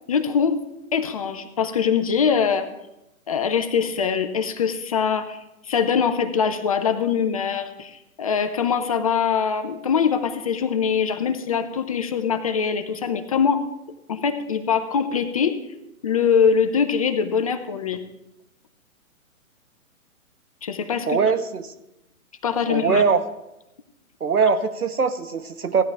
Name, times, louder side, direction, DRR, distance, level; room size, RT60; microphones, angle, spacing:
voice 1, 0.1-0.6 0.9-2.7 3.3-5.4 5.7-13.6 14.1-15.6 16.0-18.0 20.6-21.2 22.4-23.0, left 6 dB, 25° left, 9 dB, 0.5 m, -23 dB
voice 2, 21.1-21.7 22.7-23.2 24.2-25.8, right 5 dB, 85° right, 11 dB, 1.1 m, -21 dB
16.0 x 10.5 x 3.4 m, 0.90 s
figure-of-eight pair, 135°, 43 cm